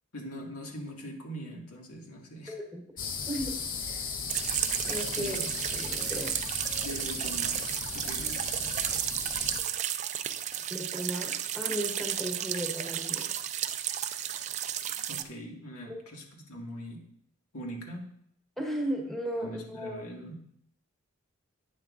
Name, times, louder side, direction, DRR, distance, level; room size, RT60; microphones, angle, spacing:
voice 1, 0.1-2.6 5.2-5.5 6.8-7.7 7.9-8.8 15.1-17.0 17.5-18.0 19.4-20.4, right 1 dB, 85° left, 0 dB, 1.9 m, -42 dB
voice 2, 2.5-2.8 3.3-3.5 3.8-4.1 4.9-5.5 5.7-6.3 9.2-9.3 10.7-13.3 15.9-16.0 18.6-20.0, equal, ahead, 0 dB, 1.2 m, -35 dB
sound 1, 3.0-9.6, left 5 dB, 40° left, 0.7 m, -37 dB
sound 2, 4.3-15.2, right 10 dB, 30° right, 0.3 m, -33 dB
10.5 x 9.1 x 2.5 m, 0.70 s
head